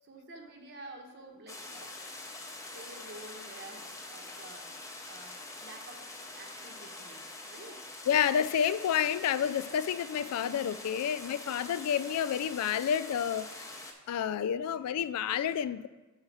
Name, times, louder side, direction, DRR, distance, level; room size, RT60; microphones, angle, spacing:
voice 1, 0.0-2.0 2.7-4.7 5.0-6.1 6.4-7.8, right 2 dB, 50° right, 2 dB, 1.1 m, -50 dB
sound 1, 1.5-13.9, left 2 dB, 15° left, 0.6 m, -45 dB
voice 2, 8.1-13.5 14.1-15.9, left 8 dB, 85° left, 15 dB, 0.3 m, -29 dB
6.3 x 5.5 x 4.8 m, 1.2 s
head